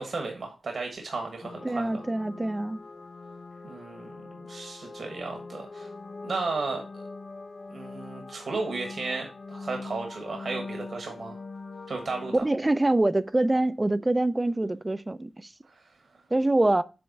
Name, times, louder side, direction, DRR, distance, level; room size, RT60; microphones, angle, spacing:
voice 1, 0.0-2.0 3.6-5.9 6.2-7.0 7.7-11.4 11.9-12.4 15.8-15.9, right 3 dB, 55° right, 1.3 m, -34 dB
sound 1, 1.4-12.4, left 3 dB, 45° left, 0.8 m, -42 dB
voice 2, 1.6-2.8 12.4-15.5 16.3-16.8, right 2 dB, 15° right, 0.4 m, -25 dB
7.7 x 3.4 x 5.3 m
wide cardioid pair, 130°, 0 cm